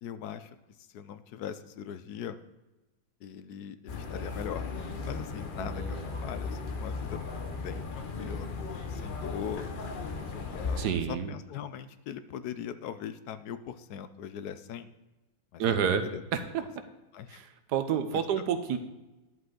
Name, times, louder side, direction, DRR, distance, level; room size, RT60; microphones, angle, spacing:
voice 1, 0.0-0.5 0.9-2.4 3.2-4.6 5.1-7.2 7.5-8.6 8.9-9.7 10.5-14.9 15.5-16.2 17.1-17.4 18.1-18.4, left 9 dB, 75° left, 12 dB, 1.1 m, -40 dB
sound 1, 3.9-10.9, left 4 dB, 40° left, 0.8 m, -36 dB
voice 2, 5.6-6.0 10.8-11.3 15.6-16.0 16.3-16.6 17.3-18.8, right 7 dB, 80° right, 9 dB, 1.4 m, -29 dB
11.0 x 7.7 x 3.8 m, 1.1 s
omnidirectional pair, 1.8 m